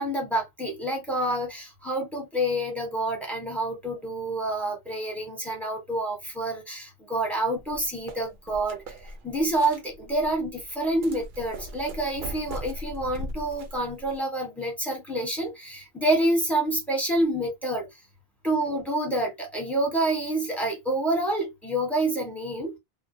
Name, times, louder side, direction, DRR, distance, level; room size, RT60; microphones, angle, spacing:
voice 1, 0.0-8.8 9.2-17.9 18.4-22.8, right 1 dB, ahead, 0.9 m, -28 dB
sound 1, 7.6-14.2, right 1 dB, 60° right, 0.7 m, -40 dB
2.3 x 2.1 x 2.5 m
omnidirectional pair, 1.1 m